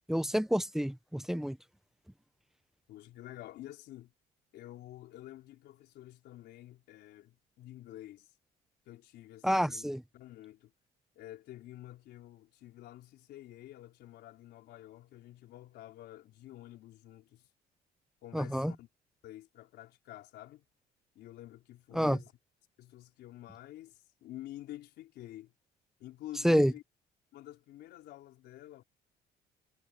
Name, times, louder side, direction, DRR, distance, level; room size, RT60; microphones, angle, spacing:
voice 1, 0.1-1.6 9.4-10.0 18.3-18.7 21.9-22.2 26.4-26.7, equal, ahead, 0.7 m, -28 dB
voice 2, 2.9-4.1 4.5-8.3 8.9-9.8 10.1-10.7 11.2-17.4 18.2-18.9 19.2-20.6 21.1-22.3 22.8-25.5 26.0-26.8 27.3-28.8, left 14 dB, 75° left, 4.0 m, -49 dB
cardioid pair, 110°, 17 cm